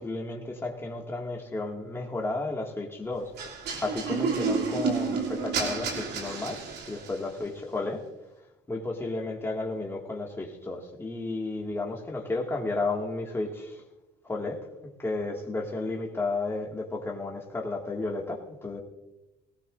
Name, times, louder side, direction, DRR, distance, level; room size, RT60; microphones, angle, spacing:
voice 1, 0.0-3.3 3.8-6.6 6.9-8.0 8.7-13.8 14.2-14.7 15.0-18.8, left 2 dB, 15° left, -1 dB, 2.0 m, -33 dB
sound 1, 3.4-7.3, right 5 dB, 75° right, 2.8 m, -30 dB
18.0 x 17.5 x 2.6 m, 0.98 s
cardioid pair, 110°, 17 cm